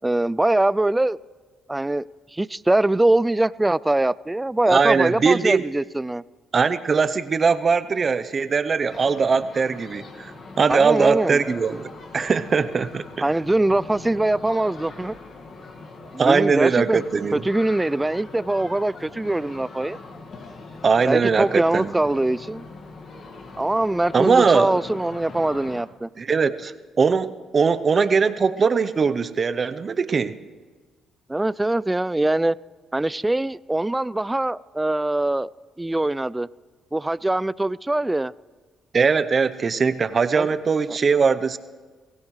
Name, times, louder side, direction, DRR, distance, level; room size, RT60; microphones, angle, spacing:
voice 1, 0.0-1.2 1.7-2.0 2.3-6.2 10.7-11.4 13.2-15.1 16.1-17.0 17.3-20.0 21.1-22.6 23.6-26.1 31.3-32.6 32.9-35.5 35.8-36.5 36.9-38.3 40.3-40.5 40.9-41.0, right 2 dB, 15° right, 21 dB, 0.4 m, -22 dB
voice 2, 4.7-5.6 6.5-11.9 12.1-13.3 16.2-17.4 20.8-21.9 24.1-24.8 26.2-30.4 38.9-41.6, right 5 dB, 45° right, 12 dB, 0.7 m, -21 dB
sound 1, 8.9-25.8, left 3 dB, 55° left, 1.9 m, -41 dB
23.0 x 17.0 x 3.2 m, 1.4 s
supercardioid pair, 65°, 0 cm